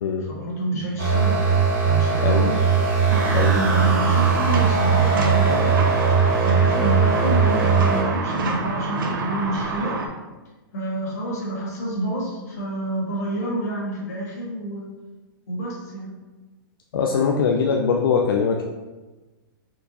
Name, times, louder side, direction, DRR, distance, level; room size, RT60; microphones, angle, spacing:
voice 1, 0.2-1.4 1.8-2.6 3.4-5.7 6.3-10.0 10.7-14.9 15.5-16.1 17.1-17.5, right 1 dB, 45° left, -5 dB, 1.5 m, -28 dB
sound 1, 1.0-8.0, right 5 dB, 35° right, 0.8 m, -19 dB
sound 2, 3.1-10.1, right 3 dB, 65° right, 0.7 m, -27 dB
voice 2, 16.9-18.6, left 6 dB, 70° left, 1 dB, 0.4 m, -21 dB
4.5 x 2.6 x 4.0 m, 1.2 s
hypercardioid pair, 180°, 12 cm